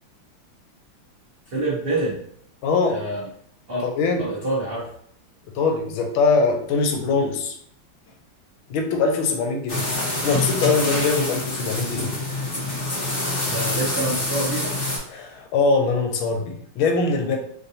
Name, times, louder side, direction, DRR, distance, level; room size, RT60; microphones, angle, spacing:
voice 1, 1.5-2.2 2.9-3.2 3.7-3.9 4.2-4.9 13.4-14.8, right 2 dB, 75° right, -7 dB, 0.5 m, -27 dB
voice 2, 2.6-3.0 3.8-4.2 5.5-7.5 8.7-9.9 10.2-12.1 15.1-17.4, left 4 dB, 90° left, 4 dB, 1.4 m, -22 dB
sound 1, 9.7-15.0, left 2 dB, 55° left, 0.6 m, -26 dB
3.5 x 2.6 x 2.7 m, 0.66 s
omnidirectional pair, 2.2 m